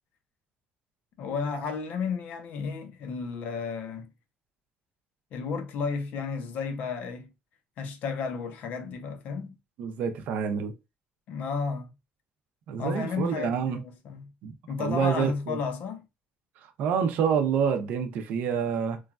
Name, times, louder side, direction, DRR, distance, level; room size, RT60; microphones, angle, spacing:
voice 1, 1.2-4.1 5.3-7.3 7.8-9.6 11.3-11.9 12.8-13.8 14.0-14.3 14.7-16.1, left 5 dB, 55° left, 0.6 m, -32 dB
voice 2, 9.8-10.7 12.7-13.8 14.4-15.6 16.6-19.0, right 7 dB, 60° right, 0.5 m, -27 dB
3.1 x 2.2 x 2.4 m
cardioid pair, 170°, 3 cm